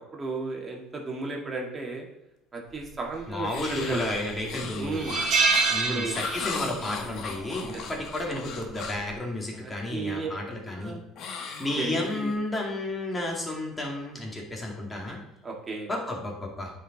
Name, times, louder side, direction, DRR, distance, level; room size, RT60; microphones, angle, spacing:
voice 1, 0.1-2.1 2.5-4.1 4.8-5.2 5.9-6.2 9.6-10.3 10.7-11.0 11.8-12.3 15.4-15.9, right 3 dB, 25° right, 0 dB, 1.9 m, -34 dB
voice 2, 3.3-5.1 5.7-10.9 11.4-15.2 15.9-16.7, left 1 dB, 20° left, -1 dB, 2.3 m, -32 dB
sound 1, 3.5-9.1 11.2-12.3, left 5 dB, 60° left, 1.2 m, -37 dB
sound 2, 3.5-4.0 4.4-4.5 4.9-6.7 7.0-7.2 8.5-8.8, right 4 dB, 45° right, 2.4 m, -25 dB
9.0 x 5.1 x 4.0 m, 0.88 s
supercardioid pair, 105°, 0 cm